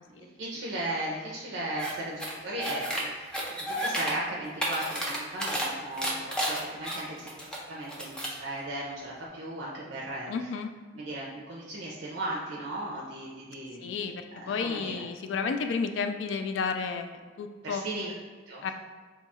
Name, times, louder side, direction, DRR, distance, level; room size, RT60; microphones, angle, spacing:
voice 1, 0.1-10.5 10.9-13.8 14.3-15.0 17.6-18.1 18.5-18.7, right 1 dB, 70° right, -5 dB, 0.5 m, -36 dB
sound 1, 1.8-1.9 2.2-3.0 3.3-4.1 4.4-5.7 6.0-7.6 7.9-8.4, equal, 5° left, 0.5 m, -31 dB
voice 2, 10.3-10.7 13.8-17.8 18.6-18.7, left 5 dB, 75° left, 7 dB, 0.3 m, -32 dB
2.8 x 2.3 x 4.1 m, 1.5 s
head